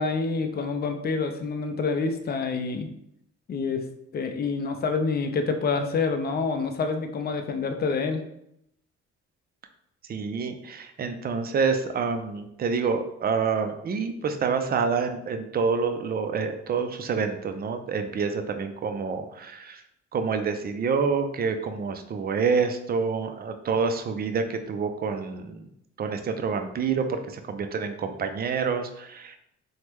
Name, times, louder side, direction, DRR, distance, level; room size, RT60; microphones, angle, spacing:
voice 1, 0.0-2.9 3.5-3.9 4.1-8.2, left 4 dB, 35° left, 6 dB, 0.4 m, -27 dB
voice 2, 10.1-19.8 20.1-25.7 26.0-29.4, right 5 dB, 30° right, 7 dB, 0.4 m, -27 dB
3.3 x 2.1 x 3.0 m, 0.77 s
cardioid pair, 90°, 30 cm